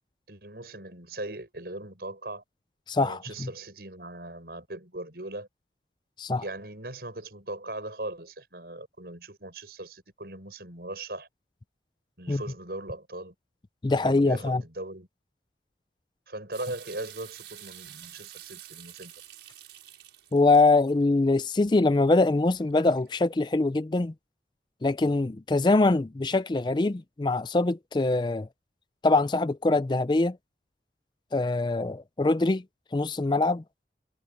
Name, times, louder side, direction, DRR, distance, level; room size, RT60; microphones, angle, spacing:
voice 1, 0.3-2.4 3.0-5.5 6.4-11.3 12.2-13.3 13.9-15.1 16.3-19.1, right 2 dB, 60° right, 6.9 m, -39 dB
voice 2, 2.9-3.5 6.2-6.4 12.3-12.4 13.8-14.6 20.3-24.1 24.8-28.5 29.0-30.4 31.3-32.6 32.9-33.6, left 2 dB, 25° left, 0.4 m, -23 dB
sound 1, 16.5-23.4, right 12 dB, 85° right, 5.3 m, -49 dB
head